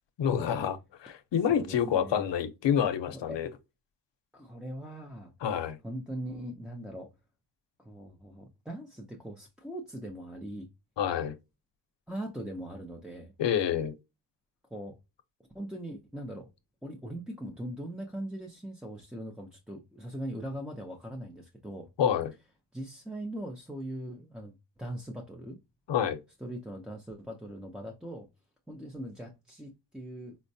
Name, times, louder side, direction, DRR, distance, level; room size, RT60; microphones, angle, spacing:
voice 1, 0.2-3.5 5.4-5.8 11.0-11.4 13.4-13.9 22.0-22.3 25.9-26.2, left 8 dB, 90° left, 0.7 m, -28 dB
voice 2, 1.5-2.3 3.1-3.4 4.3-5.3 5.8-7.1 7.8-10.7 12.1-13.3 14.7-15.0 15.5-16.5 16.8-21.9 22.7-25.6 26.4-28.3 28.7-30.4, right 1 dB, ahead, 0.4 m, -40 dB
4.3 x 2.1 x 2.6 m
wide cardioid pair, 175°, 42 cm